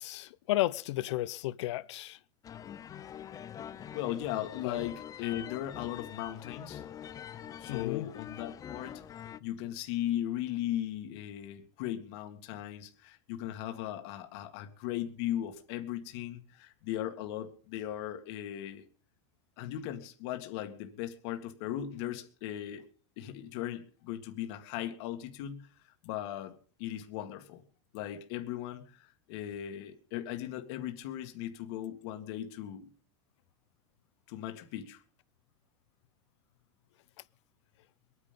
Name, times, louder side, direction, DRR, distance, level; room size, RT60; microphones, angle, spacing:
voice 1, 0.0-2.2 4.6-4.8 7.7-8.1, left 16 dB, 80° left, 0.7 m, -33 dB
sound 1, 2.4-9.4, left 9 dB, 25° left, 0.7 m, -45 dB
voice 2, 3.9-6.9 7.6-9.0 9.4-18.8 19.6-22.9 23.2-25.7 26.0-27.6 27.9-32.9 34.3-35.0, left 12 dB, 60° left, 2.0 m, -38 dB
22.0 x 9.7 x 5.3 m
supercardioid pair, 140°, 15 cm